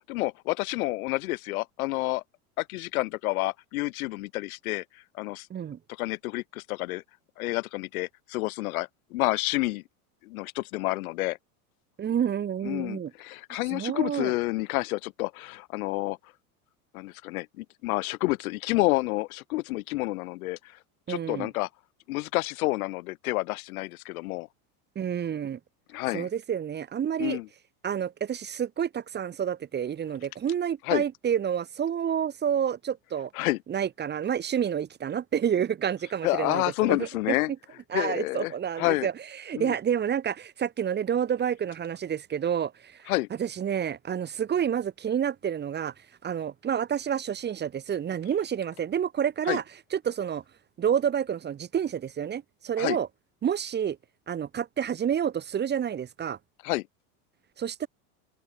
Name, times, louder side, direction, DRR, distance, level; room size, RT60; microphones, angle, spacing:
voice 1, 0.0-2.2 2.6-5.5 6.0-7.0 7.4-9.8 10.2-11.4 12.6-16.2 16.9-20.8 21.1-21.7 22.1-24.5 25.9-26.3 27.2-27.5 30.8-31.0 33.3-33.6 36.2-37.5 37.9-38.5 38.8-39.1 39.5-39.8 43.1-43.3 49.5-49.6 52.8-53.0 56.6-56.9, left 20 dB, 75° left, 1.5 m, -29 dB
voice 2, 12.0-13.1 13.7-14.3 21.1-21.5 24.9-25.6 26.1-27.4 27.8-33.3 33.7-36.6 36.9-37.1 37.9-39.1 39.4-43.1 43.4-45.9 46.2-49.6 49.9-50.4 50.8-53.1 53.4-54.0 54.3-56.4 57.6-57.9, right 8 dB, 25° right, 1.1 m, -29 dB
open air
supercardioid pair, 115°, 43 cm